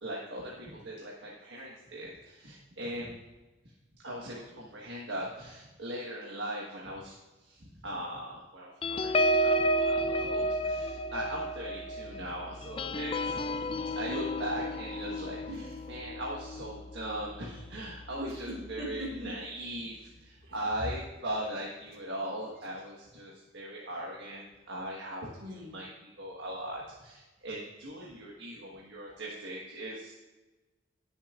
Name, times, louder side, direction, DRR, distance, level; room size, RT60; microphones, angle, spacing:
voice 1, 0.0-3.2 4.0-15.4 15.9-25.3 25.5-30.1, right 1 dB, 75° right, -4 dB, 1.4 m, -39 dB
sound 1, 8.8-17.7 18.2-18.4 18.7-19.0, equal, 30° left, 0.3 m, -31 dB
voice 2, 15.5-15.8 18.2-19.4 20.4-20.6 22.4-22.7 25.4-25.8, equal, 50° right, -2 dB, 2.0 m, -41 dB
19.0 x 7.1 x 2.5 m, 1.1 s
head